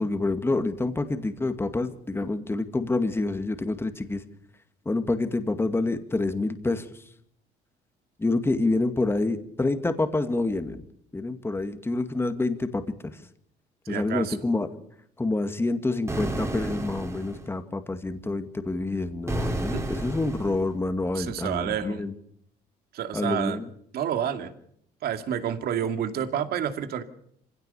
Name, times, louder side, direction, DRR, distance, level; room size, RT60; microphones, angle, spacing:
voice 1, 0.0-4.2 4.9-7.0 8.2-10.8 11.1-12.8 13.9-14.7 15.2-22.1 23.1-23.7, left 2 dB, 15° left, 8 dB, 2.1 m, -27 dB
voice 2, 13.9-14.4 19.7-19.8 21.1-22.0 22.9-23.6 23.9-24.5 25.0-27.0, right 9 dB, 65° right, 8 dB, 2.4 m, -29 dB
sound 1, 16.1-17.5 19.3-20.7, right 2 dB, 15° right, 3.6 m, -31 dB
26.0 x 16.5 x 7.1 m, 0.70 s
cardioid pair, 110°, 17 cm